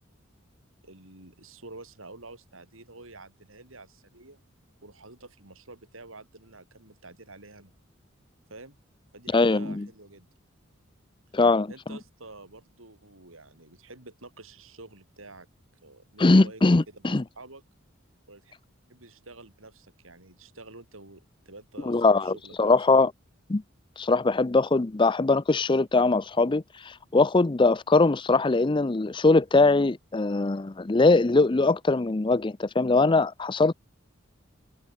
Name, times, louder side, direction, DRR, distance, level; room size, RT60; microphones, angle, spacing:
voice 1, 0.8-4.4 4.8-7.7 8.5-8.8 9.1-10.3 11.7-15.5 15.8-17.6 18.3-18.6 18.9-22.7, right 2 dB, 90° right, 7.8 m, -48 dB
voice 2, 9.3-9.9 11.3-11.7 16.2-17.2 21.8-23.1 23.5-23.6 24.0-33.7, left 3 dB, 25° left, 0.5 m, -21 dB
head